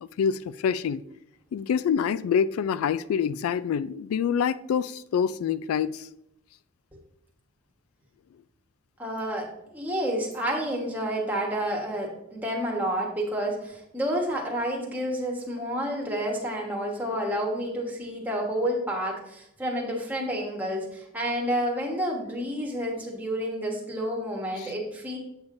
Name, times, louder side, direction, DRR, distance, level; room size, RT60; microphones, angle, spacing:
voice 1, 0.2-1.0 1.5-6.1 24.6-24.7, left 7 dB, 85° left, 0.3 m, -26 dB
voice 2, 9.0-25.2, equal, 10° right, 1.3 m, -29 dB
7.9 x 7.1 x 2.6 m
head